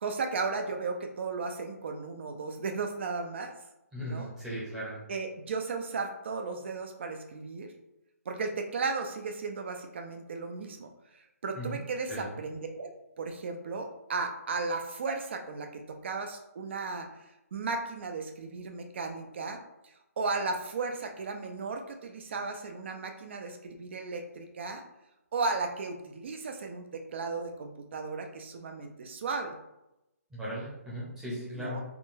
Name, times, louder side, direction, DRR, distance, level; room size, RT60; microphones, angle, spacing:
voice 1, 0.0-3.5 4.0-4.3 5.1-7.7 8.3-10.9 11.4-17.1 17.5-19.6 20.2-24.8 25.3-29.6 31.5-31.8, right 4 dB, 45° right, 4 dB, 0.4 m, -35 dB
voice 2, 3.9-5.0 11.6-11.8 12.1-12.3 30.3-31.8, equal, 5° right, -8 dB, 0.7 m, -37 dB
3.6 x 2.1 x 2.6 m, 0.90 s
hypercardioid pair, 155°, 8 cm